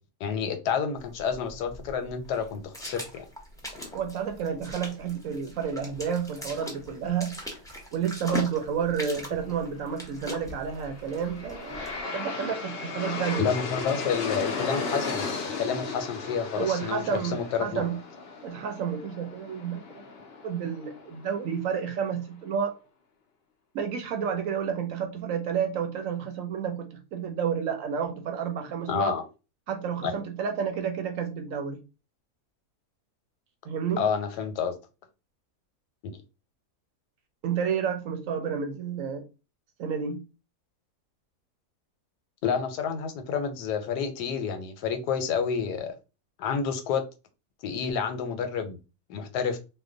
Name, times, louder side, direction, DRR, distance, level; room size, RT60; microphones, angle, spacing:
voice 1, 0.2-3.3 13.4-17.8 28.9-29.2 30.0-30.2 34.0-34.7 36.0-36.1 42.4-45.9 46.4-47.0 47.6-48.8 49.1-49.6, left 6 dB, 90° left, 1.2 m, -29 dB
sound 1, 1.0-12.0, left 1 dB, 5° left, 0.4 m, -41 dB
voice 2, 3.9-7.4 7.9-13.5 16.6-18.0 18.4-20.0 20.4-22.7 23.7-29.2 29.7-31.8 33.7-34.0 37.4-39.2 39.8-40.3, right 7 dB, 70° right, 0.9 m, -30 dB
Aircraft, 10.7-21.7, left 4 dB, 60° left, 0.7 m, -35 dB
2.9 x 2.2 x 3.7 m
omnidirectional pair, 1.7 m